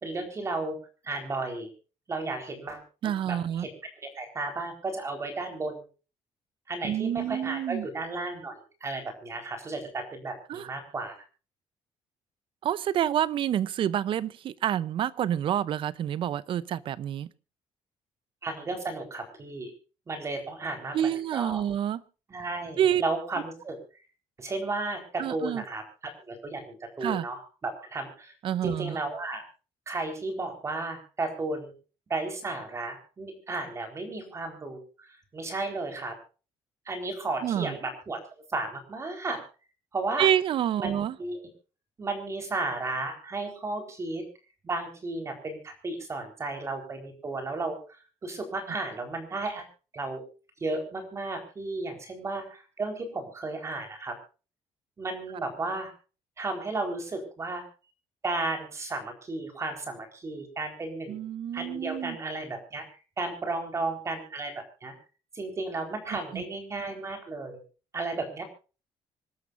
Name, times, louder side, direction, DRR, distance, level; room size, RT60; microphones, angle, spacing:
voice 1, 0.0-0.8 1.0-1.7 2.1-2.8 3.2-3.7 4.1-5.8 6.7-11.1 18.4-19.7 20.1-21.6 22.3-23.8 24.4-28.3 28.6-29.4 29.9-31.7 32.1-36.2 36.9-38.2 38.5-39.4 39.9-40.3 40.8-41.5 42.0-44.2 44.6-49.7 49.9-50.2 50.6-54.2 55.0-55.9 56.4-57.6 58.2-61.2 61.5-62.9 63.2-64.9 65.3-67.6 67.9-68.4, right 2 dB, 25° right, 4.3 m, -34 dB
voice 2, 3.0-3.7 6.8-7.9 10.5-10.7 12.6-17.3 20.9-22.0 22.8-23.0 25.2-25.6 27.0-27.3 28.4-29.0 37.4-37.7 40.2-41.1 61.1-62.2 66.3-66.4, right 10 dB, 55° right, 0.7 m, -28 dB
26.5 x 12.5 x 2.6 m
cardioid pair, 140°, 11 cm